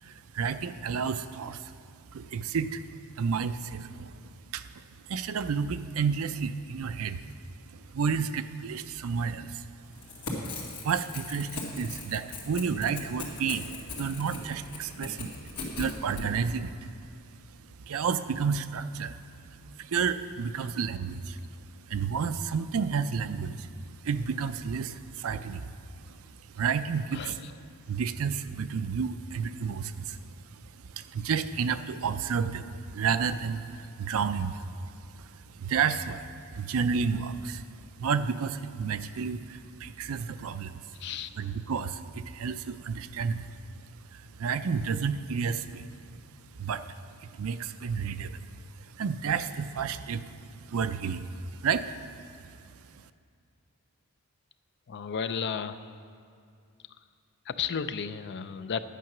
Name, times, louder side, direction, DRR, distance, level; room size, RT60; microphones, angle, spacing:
voice 1, 0.0-1.8 2.1-2.9 3.2-4.2 4.5-4.7 5.0-7.2 7.7-9.7 10.4-13.7 14.0-15.4 15.7-16.9 17.6-19.3 19.7-21.4 21.9-27.4 27.9-41.0 41.4-43.5 44.1-45.9 46.6-48.5 48.8-52.5 52.9-53.0, right 6 dB, 65° right, 11 dB, 0.4 m, -31 dB
Crackle / Tearing, 9.9-16.3, left 3 dB, 85° left, 2.3 m, -39 dB
voice 2, 27.1-27.5 41.0-41.3 54.9-55.8 57.5-58.8, left 6 dB, 50° left, 12 dB, 0.4 m, -33 dB
10.5 x 9.2 x 6.0 m, 2.3 s
head